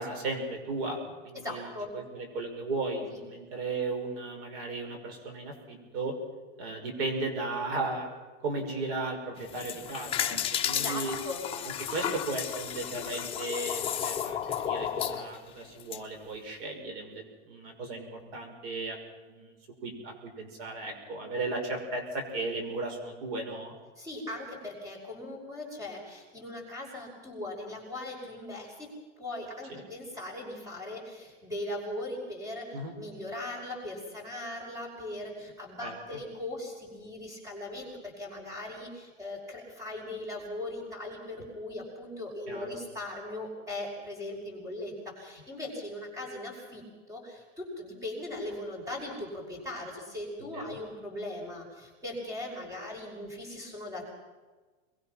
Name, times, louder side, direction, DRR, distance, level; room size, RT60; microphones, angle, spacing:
voice 1, 0.0-6.1 6.6-8.1 8.4-10.4 10.7-11.1 11.9-14.4 14.6-19.0 19.3-19.6 19.8-23.7 29.7-29.8 32.7-32.9 35.8-35.9 42.5-42.7 50.4-50.8, right 2 dB, 60° right, 4 dB, 6.1 m, -35 dB
voice 2, 1.3-2.0 10.7-11.5 24.0-54.1, left 1 dB, 10° right, 0 dB, 6.0 m, -39 dB
sound 1, 9.4-16.0, left 9 dB, 15° left, 1.3 m, -33 dB
26.5 x 22.0 x 6.0 m, 1.3 s
supercardioid pair, 165°, 33 cm